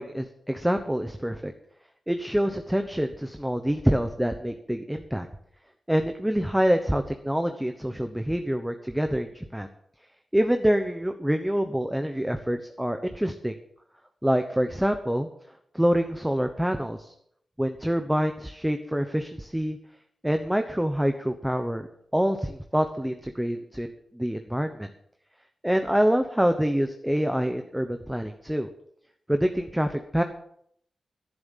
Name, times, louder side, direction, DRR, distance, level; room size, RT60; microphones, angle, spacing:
voice 1, 0.0-1.5 2.1-5.3 5.9-9.7 10.3-13.5 14.2-15.3 15.7-17.1 17.6-19.8 20.2-21.9 22.1-24.9 25.6-28.7 29.3-30.2, equal, 5° right, 7 dB, 1.0 m, -26 dB
11.0 x 10.5 x 7.3 m, 0.69 s
wide cardioid pair, 95°, 0 cm